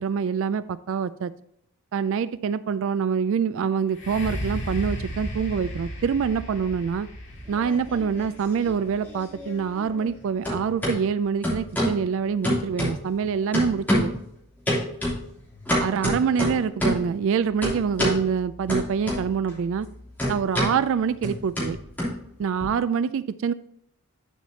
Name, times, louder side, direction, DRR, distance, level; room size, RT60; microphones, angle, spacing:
voice 1, 0.0-1.3 1.9-7.1 7.5-14.1 15.8-19.9 20.3-21.8 22.4-23.5, right 6 dB, 60° right, 16 dB, 0.3 m, -25 dB
sound 1, 3.9-11.7 12.3-12.4, equal, 55° left, 2.7 m, -36 dB
sound 2, 7.3-8.3 8.6-10.2 10.4-11.0 11.4-12.0 12.4-13.2 13.5-14.2 14.7-17.1 17.6-18.2 18.7-19.5 19.8-22.6, equal, 10° left, 2.9 m, -27 dB
8.9 x 7.2 x 2.8 m, 0.72 s
head